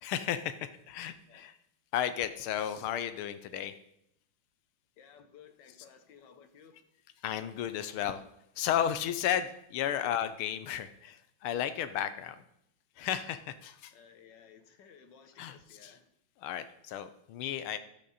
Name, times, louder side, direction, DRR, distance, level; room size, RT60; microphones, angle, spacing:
voice 1, 0.0-0.6 0.9-1.5 1.9-3.7 7.2-8.2 8.6-12.4 13.0-13.9 15.4-15.9 16.4-17.8, left 10 dB, 80° left, 12 dB, 1.5 m, -33 dB
voice 2, 5.0-6.8 13.9-16.1, left 7 dB, 65° left, 8 dB, 1.4 m, -56 dB
12.0 x 7.6 x 4.1 m, 0.78 s
omnidirectional pair, 2.4 m